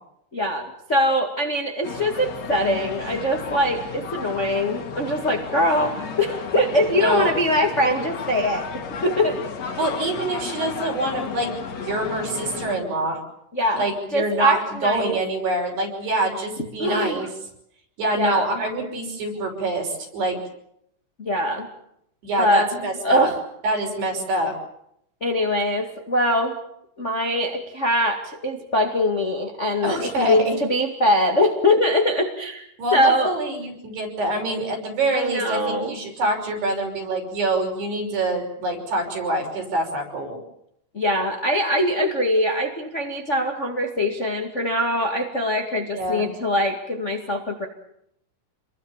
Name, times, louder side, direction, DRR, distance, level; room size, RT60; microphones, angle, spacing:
voice 1, 0.3-8.7 9.0-9.4 13.5-13.8 14.1-15.2 16.8-17.3 18.1-18.6 21.2-21.7 22.4-22.7 23.0-23.3 25.2-26.6 27.0-33.3 35.1-36.0 40.9-47.7, left 1 dB, 65° left, 2 dB, 0.7 m, -22 dB
sound 1, 1.8-12.8, left 5 dB, 45° left, 2.4 m, -33 dB
voice 2, 7.0-7.3 9.8-13.2 13.8-17.3 18.0-20.4 22.2-23.3 23.6-24.5 29.8-30.6 32.8-40.4 45.9-46.3, right 1 dB, 55° right, 1 dB, 7.7 m, -25 dB
28.0 x 22.0 x 7.4 m, 0.76 s
omnidirectional pair, 5.6 m